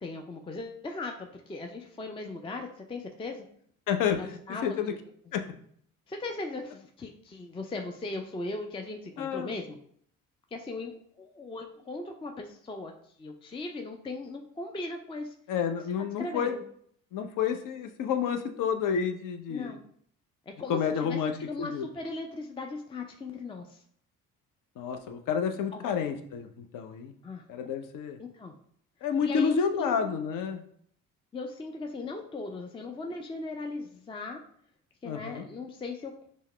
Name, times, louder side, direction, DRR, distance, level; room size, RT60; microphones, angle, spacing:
voice 1, 0.0-3.5 4.1-5.0 6.1-9.8 10.5-15.4 16.2-16.6 19.5-19.8 20.5-23.8 25.7-25.8 27.2-27.7 28.2-28.5 29.2-30.0 31.3-34.4 35.0-36.1, left 3 dB, 15° left, 4 dB, 0.4 m, -38 dB
voice 2, 3.9-4.9 5.3-5.4 9.2-9.5 15.5-16.5 17.1-19.8 20.7-21.3 21.6-21.9 24.8-27.1 27.5-28.2 29.0-30.6 35.1-35.5, left 7 dB, 50° left, 7 dB, 0.7 m, -30 dB
5.4 x 2.0 x 3.1 m, 0.63 s
hypercardioid pair, 55°, 40 cm